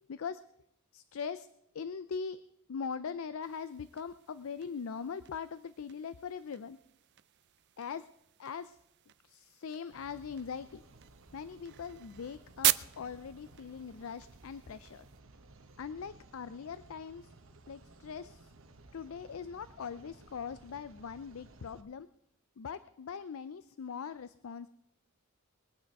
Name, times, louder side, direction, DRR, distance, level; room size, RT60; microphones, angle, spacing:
voice 1, 0.1-0.4 0.9-1.5 1.7-2.4 2.7-6.8 7.8-8.1 8.4-8.8 9.2-10.8 11.3-15.0 15.8-17.3 17.7-18.5 18.9-22.1 22.6-24.7, left 6 dB, 75° left, 14 dB, 0.5 m, -41 dB
sound 1, 3.4-15.2, right 16 dB, 55° right, 0.4 m, -40 dB
sound 2, 9.9-21.8, right 2 dB, 70° right, 1.2 m, -57 dB
21.5 x 9.1 x 4.7 m, 0.78 s
head